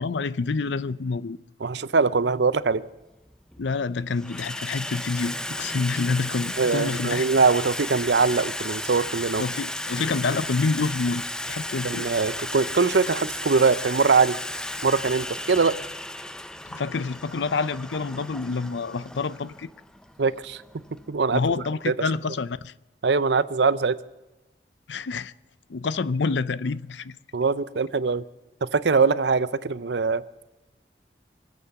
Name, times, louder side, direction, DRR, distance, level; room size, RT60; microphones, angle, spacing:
voice 1, 0.0-1.4 3.6-7.3 9.4-12.1 16.7-19.7 21.3-22.7 24.9-25.3 25.7-27.2, left 4 dB, 85° left, 0.6 m, -27 dB
voice 2, 1.6-2.8 6.6-9.4 11.8-14.4 14.8-15.8 20.2-20.6 21.1-21.4 21.9-22.0 23.0-24.0 27.3-28.2 28.6-30.2, right 4 dB, 75° right, 0.6 m, -22 dB
Water tap faucet / Sink (filling or washing), 2.2-2.4 3.3-3.7 4.0-21.6, left 1 dB, 5° left, 0.5 m, -34 dB
24.5 x 8.4 x 7.0 m
head